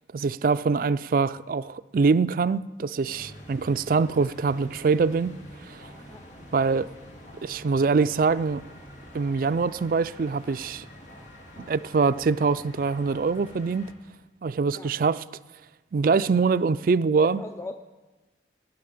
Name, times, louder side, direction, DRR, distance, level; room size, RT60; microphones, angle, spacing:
voice 1, 0.1-5.4 5.7-5.8 6.5-6.9 7.4-8.6 9.1-10.8 11.7-13.9 14.4-15.2 15.9-17.4, right 4 dB, 50° right, 0.3 m, -24 dB
sound 1, 3.1-13.9, equal, 85° left, 2.7 m, -47 dB
sound 2, 5.8-13.1, equal, 60° left, 4.2 m, -54 dB
voice 2, 17.2-17.7, left 2 dB, 15° left, 0.4 m, -38 dB
18.5 x 11.0 x 5.1 m
head